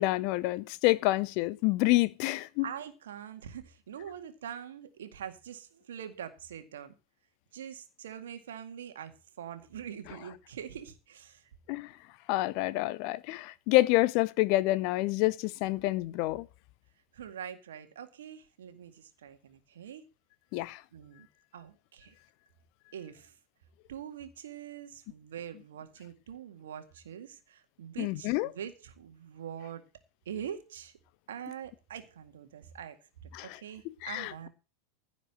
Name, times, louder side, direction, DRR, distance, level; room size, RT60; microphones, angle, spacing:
voice 1, 0.0-2.7 11.7-11.9 12.3-16.5 20.5-20.8 28.0-28.5 33.3-33.6 34.0-34.5, left 19 dB, 45° left, 0.6 m, -28 dB
voice 2, 2.6-6.9 7.5-11.5 17.1-20.1 20.9-21.3 21.5-22.1 22.9-23.4 23.9-29.8 30.3-30.9 31.3-34.5, right 9 dB, 60° right, 2.0 m, -44 dB
15.5 x 5.2 x 7.8 m
figure-of-eight pair, 90°, 0 cm